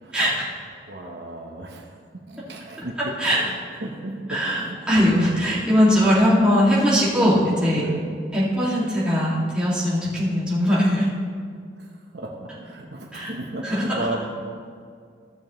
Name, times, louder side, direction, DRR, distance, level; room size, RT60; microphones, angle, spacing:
voice 1, 0.1-0.5 3.2-3.4 4.3-7.9 8.3-11.1 13.1-13.3 13.6-14.1, equal, 5° right, -8 dB, 2.3 m, -20 dB
voice 2, 0.9-1.8 2.2-3.1 3.5-4.8 7.8-8.1 11.8-11.9 12.1-14.3, right 1 dB, 65° right, 0 dB, 1.0 m, -34 dB
16.0 x 7.0 x 3.2 m, 2.2 s
head